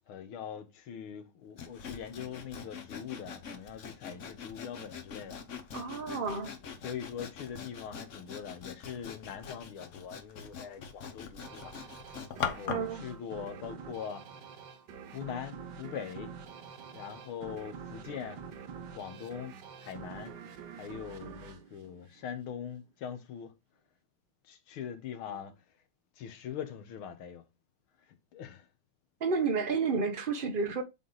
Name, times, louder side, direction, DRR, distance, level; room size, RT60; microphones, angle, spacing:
voice 1, 0.1-5.4 6.6-11.7 12.1-14.2 15.0-16.3 16.9-19.5 19.8-20.4 20.8-23.5 24.4-25.6 26.2-27.4 28.1-28.7, left 8 dB, 75° left, 1.9 m, -42 dB
Sawing, 1.6-12.9, left 7 dB, 50° left, 1.0 m, -42 dB
voice 2, 5.7-6.5 12.7-13.0 29.2-30.8, right 4 dB, 45° right, 0.7 m, -31 dB
sound 1, 11.4-22.6, right 6 dB, 60° right, 1.4 m, -47 dB
7.6 x 3.5 x 3.9 m
omnidirectional pair, 2.3 m